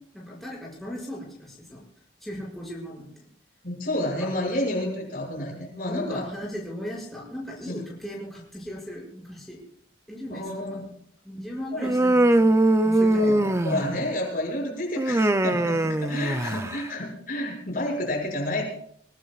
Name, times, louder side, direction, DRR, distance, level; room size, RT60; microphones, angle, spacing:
voice 1, 0.1-1.9 2.2-3.3 4.2-4.3 5.9-9.6 10.1-10.9 11.2-13.9 16.4-16.6, equal, ahead, -6 dB, 6.3 m, -37 dB
voice 2, 3.6-6.2 7.6-7.8 10.3-10.8 11.7-11.9 13.1-18.6, left 1 dB, 45° left, -2 dB, 6.3 m, -30 dB
Human voice, 11.8-14.1 15.0-16.8, right 1 dB, 15° right, 0.5 m, -21 dB
29.0 x 18.0 x 2.4 m, 0.66 s
head